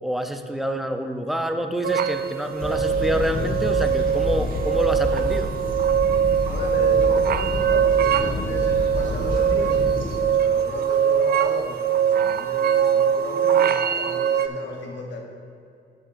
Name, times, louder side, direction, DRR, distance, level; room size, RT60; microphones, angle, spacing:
voice 1, 0.0-5.5, equal, ahead, 6 dB, 0.6 m, -27 dB
sound 1, 1.8-14.5, right 9 dB, 50° right, 0.4 m, -22 dB
sound 2, 2.6-10.2, left 1 dB, 45° left, 1.4 m, -29 dB
voice 2, 6.5-15.3, left 3 dB, 65° left, -1 dB, 1.1 m, -34 dB
12.0 x 6.4 x 2.6 m, 2.4 s
cardioid pair, 90°, 20 cm